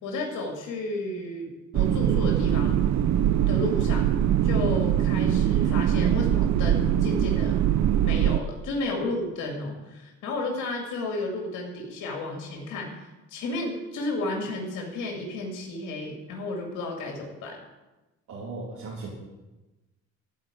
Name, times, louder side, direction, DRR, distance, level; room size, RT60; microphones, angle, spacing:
voice 1, 0.0-2.8 3.5-4.1 4.4-7.6 8.0-12.9 13.3-17.6, left 2 dB, 85° left, 0 dB, 2.2 m, -32 dB
sound 1, 1.7-8.4, right 10 dB, 65° right, 0.6 m, -22 dB
voice 2, 18.3-19.1, right 3 dB, 85° right, -6 dB, 3.0 m, -37 dB
14.0 x 4.7 x 9.0 m, 1.1 s
cardioid pair, 90°, 30 cm